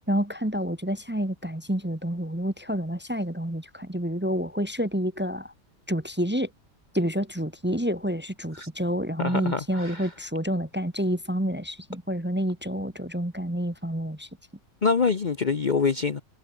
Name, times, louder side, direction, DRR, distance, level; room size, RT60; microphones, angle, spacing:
voice 1, 0.1-5.5 5.9-6.5 6.9-14.3, equal, 10° right, 1.1 m, -28 dB
voice 2, 9.2-10.1 14.8-16.2, left 5 dB, 40° left, 0.9 m, -25 dB
omnidirectional pair, 1.4 m